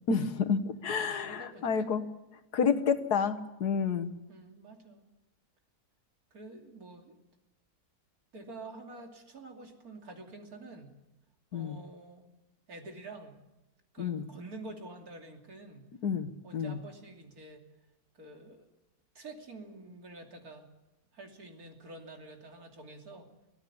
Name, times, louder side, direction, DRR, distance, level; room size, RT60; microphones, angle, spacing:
voice 1, 0.1-2.1 2.5-4.1 11.5-11.8 14.0-14.3 16.0-16.8, left 6 dB, 90° left, 10 dB, 1.9 m, -30 dB
voice 2, 1.0-1.9 4.3-5.0 6.3-7.2 8.3-10.9 11.5-12.2 12.7-13.4 13.9-15.8 16.4-17.7 18.1-18.7 19.1-20.7 21.1-23.3, right 2 dB, 70° right, 3 dB, 3.4 m, -48 dB
24.0 x 16.5 x 7.1 m, 1.0 s
omnidirectional pair, 1.6 m